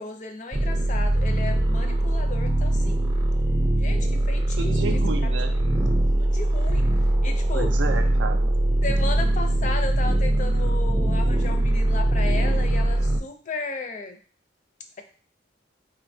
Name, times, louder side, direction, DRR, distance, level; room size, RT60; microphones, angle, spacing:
voice 1, 0.0-3.1 3.8-4.7 6.2-7.7 8.8-14.2, left 3 dB, 40° left, 6 dB, 0.4 m, -34 dB
sound 1, 0.5-13.2, right 1 dB, 25° right, 0.4 m, -22 dB
voice 2, 4.6-5.5 7.5-8.5, right 4 dB, 90° right, 6 dB, 0.5 m, -31 dB
3.2 x 2.8 x 2.6 m, 0.39 s
head